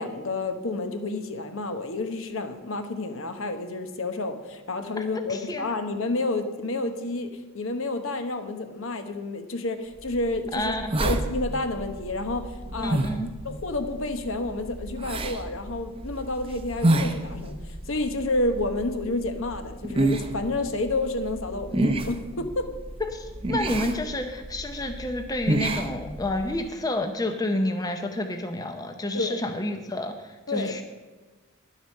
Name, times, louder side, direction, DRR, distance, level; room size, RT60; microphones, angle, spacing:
voice 1, 0.0-10.7 11.0-13.0 13.4-22.7 29.1-29.4 30.5-30.8, left 2 dB, 65° left, 8 dB, 1.0 m, -30 dB
voice 2, 5.3-5.7 10.5-11.1 12.8-13.3 23.0-30.8, left 1 dB, 15° left, 6 dB, 0.6 m, -29 dB
sound 1, 10.0-26.6, right 1 dB, 25° right, 0.7 m, -30 dB
10.5 x 7.9 x 6.5 m, 1.3 s
head